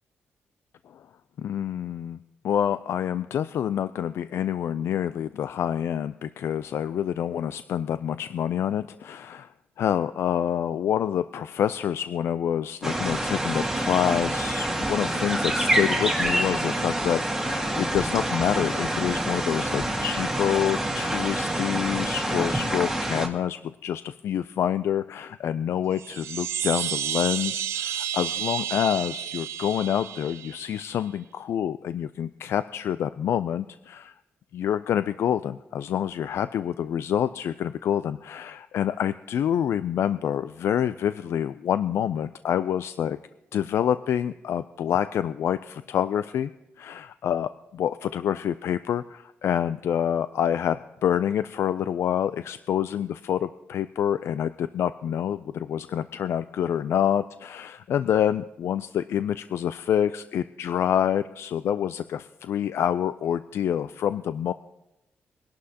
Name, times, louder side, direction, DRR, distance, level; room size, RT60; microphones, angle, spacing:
voice 1, 1.4-9.5 9.8-34.2 34.5-43.2 43.5-46.5 46.8-64.5, left 9 dB, 65° left, 13 dB, 0.3 m, -27 dB
sound 1, 12.8-23.3, right 1 dB, 5° right, 1.7 m, -27 dB
sound 2, 25.9-31.0, right 10 dB, 80° right, 0.6 m, -31 dB
22.0 x 11.5 x 2.8 m, 0.93 s
cardioid pair, 110°, 5 cm